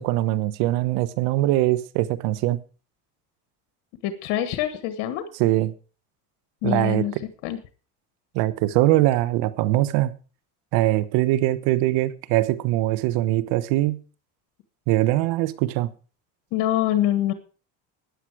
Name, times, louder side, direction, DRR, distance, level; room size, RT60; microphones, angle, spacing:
voice 1, 0.0-2.6 5.4-5.7 6.6-7.2 8.3-10.1 10.7-14.0 14.9-15.9, right 16 dB, 85° right, 16 dB, 1.2 m, -22 dB
voice 2, 4.0-5.2 6.6-7.1 7.4-7.6 16.5-17.3, left 12 dB, 85° left, 10 dB, 1.5 m, -24 dB
14.5 x 9.9 x 4.8 m, 0.37 s
supercardioid pair, 105°, 38 cm